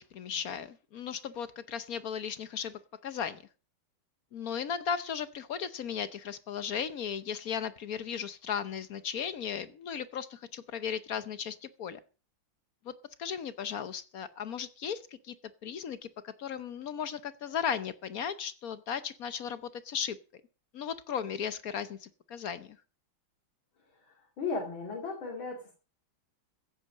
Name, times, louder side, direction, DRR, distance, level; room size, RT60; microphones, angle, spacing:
voice 1, 0.0-3.4 4.3-12.0 12.8-12.9 13.2-15.3 15.6-20.2 20.7-22.8, left 7 dB, 60° left, 13 dB, 1.1 m, -36 dB
voice 2, 24.0-25.7, left 4 dB, 75° left, 0 dB, 3.5 m, -36 dB
15.0 x 8.4 x 6.4 m, 0.37 s
omnidirectional pair, 2.2 m